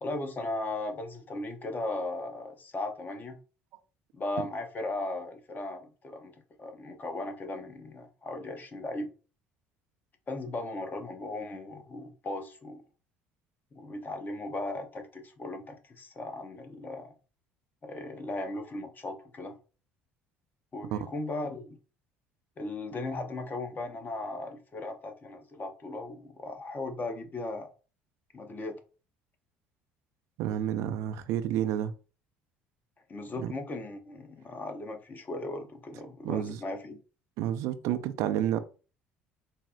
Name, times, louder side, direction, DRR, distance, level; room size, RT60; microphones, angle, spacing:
voice 1, 0.0-3.4 4.1-6.3 6.6-9.1 10.3-12.8 13.7-17.1 17.8-19.6 20.7-21.8 22.6-27.7 28.3-28.8 33.1-37.0, left 2 dB, 35° left, 0.9 m, -37 dB
voice 2, 30.4-31.9 33.4-33.5 36.2-36.6 37.4-38.6, right 11 dB, 65° right, 0.4 m, -30 dB
4.1 x 2.0 x 3.8 m
hypercardioid pair, 65°, 6 cm